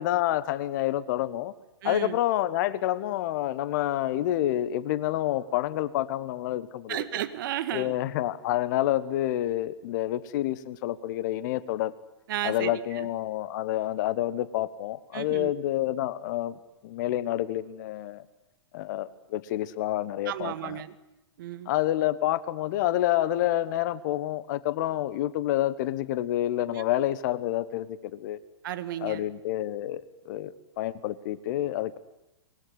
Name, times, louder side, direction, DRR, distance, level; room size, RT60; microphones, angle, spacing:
voice 1, 0.0-1.5 1.8-7.0 7.7-11.9 12.4-16.6 16.8-18.2 18.7-20.8 21.6-28.4 29.0-32.0, left 14 dB, 45° left, 16 dB, 1.3 m, -28 dB
voice 2, 1.8-2.2 6.9-7.9 12.3-13.1 15.1-15.5 20.3-20.9 21.4-21.7 28.6-29.2, right 12 dB, 50° right, 11 dB, 1.8 m, -33 dB
24.5 x 21.0 x 9.7 m, 0.97 s
figure-of-eight pair, 110°, 14 cm